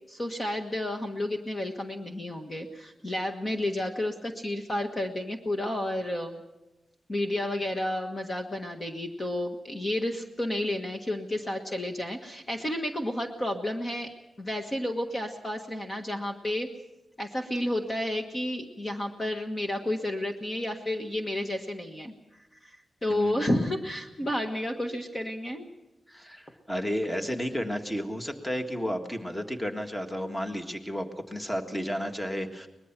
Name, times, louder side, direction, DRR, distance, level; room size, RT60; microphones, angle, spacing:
voice 1, 0.1-6.4 7.1-14.1 14.4-16.7 17.2-22.1 22.6-22.8 23.0-25.7, left 1 dB, 25° left, 3 dB, 1.5 m, -31 dB
voice 2, 23.1-23.5 26.1-32.7, equal, 10° left, 5 dB, 1.7 m, -32 dB
23.5 x 20.5 x 6.0 m, 1.0 s
wide cardioid pair, 155°, 0 cm